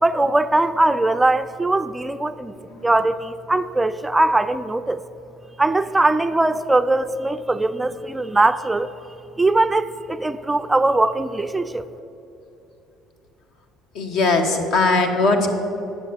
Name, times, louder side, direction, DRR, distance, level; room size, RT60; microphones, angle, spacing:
voice 1, 0.0-2.5 2.8-5.0 5.6-8.9 9.4-11.8, right 2 dB, 15° right, 12 dB, 0.3 m, -20 dB
voice 2, 13.9-15.5, left 3 dB, 70° left, 5 dB, 1.3 m, -19 dB
9.1 x 6.8 x 7.8 m, 2.9 s
supercardioid pair, 95°, 0 cm